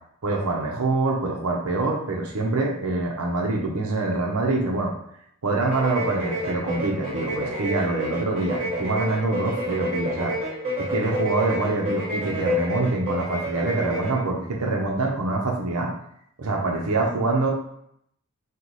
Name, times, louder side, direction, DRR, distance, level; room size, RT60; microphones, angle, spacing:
voice 1, 0.2-4.9 5.4-10.3 10.8-15.9 16.4-17.5, right 2 dB, 80° right, 0 dB, 0.8 m, -25 dB
sound 1, 5.6-14.2, equal, 35° right, 1.3 m, -29 dB
4.7 x 2.4 x 4.0 m, 0.71 s
head